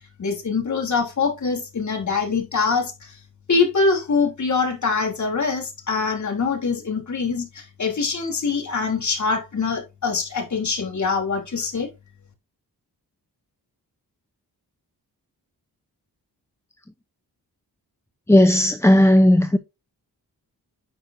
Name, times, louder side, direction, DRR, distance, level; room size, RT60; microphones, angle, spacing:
voice 1, 0.2-3.2 3.5-11.9, left 4 dB, 45° left, 3.1 m, -24 dB
voice 2, 18.3-19.6, left 1 dB, 5° left, 0.6 m, -15 dB
9.3 x 6.4 x 2.6 m
wide cardioid pair, 120°, 38 cm